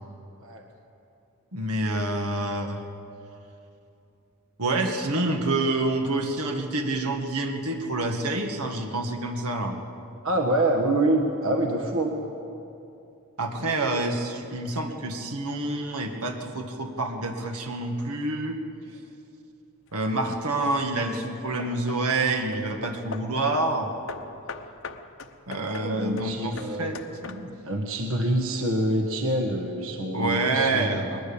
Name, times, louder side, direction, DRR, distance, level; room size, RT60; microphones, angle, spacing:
voice 1, 1.5-2.8 4.6-9.8 13.4-18.6 19.9-23.9 25.5-27.0 27.2-27.5 30.1-31.2, right 2 dB, 80° right, 4 dB, 1.9 m, -27 dB
voice 2, 10.2-12.2 25.6-26.9 27.6-31.0, right 1 dB, 60° right, 3 dB, 1.6 m, -26 dB
Hammer / Wood, 19.9-20.3 21.0-23.4 24.1-27.7, left 4 dB, 60° left, 0.9 m, -41 dB
21.0 x 20.5 x 7.1 m, 2.8 s
head